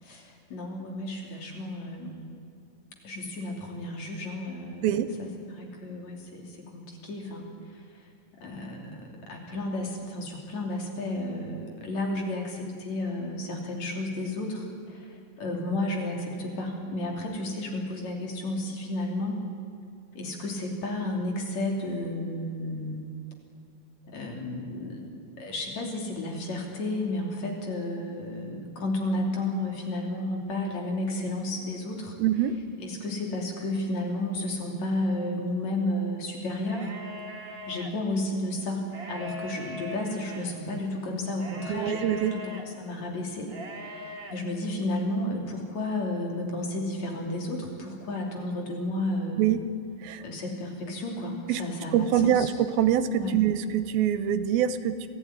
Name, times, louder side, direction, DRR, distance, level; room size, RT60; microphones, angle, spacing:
voice 1, 0.0-2.2 3.0-8.1 8.4-19.4 20.1-23.0 24.1-32.2 32.8-36.9 37.7-49.4 50.2-52.5 53.1-53.4, left 1 dB, 50° left, 1 dB, 4.1 m, -32 dB
voice 2, 32.2-32.6 41.7-42.4 49.4-49.6 50.0-50.2 51.5-51.6 51.9-55.1, right 10 dB, 85° right, 12 dB, 2.8 m, -24 dB
sound 1, 36.6-37.9 38.8-40.5 41.4-42.6 43.4-44.3, left 1 dB, 70° right, 0.5 m, -40 dB
26.0 x 16.5 x 9.6 m, 2.3 s
omnidirectional pair, 4.2 m